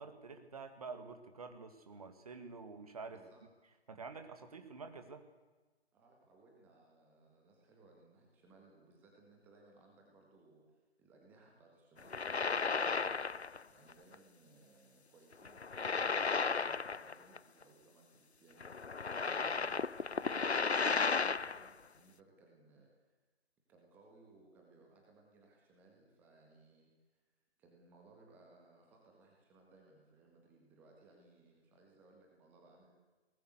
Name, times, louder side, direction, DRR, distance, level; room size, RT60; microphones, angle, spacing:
voice 1, 0.0-3.2 3.9-5.2, right 4 dB, 35° right, 7 dB, 2.0 m, -48 dB
voice 2, 5.9-19.9 20.1-23.1 23.7-27.2 27.6-32.9, right 3 dB, 5° right, 0 dB, 1.7 m, -64 dB
sound 1, 12.0-13.6 13.9-14.1 15.5-17.4 17.6-17.7 18.6-21.7, left 4 dB, 75° left, 0.7 m, -34 dB
21.5 x 19.0 x 8.1 m, 1.2 s
figure-of-eight pair, 150°, 33 cm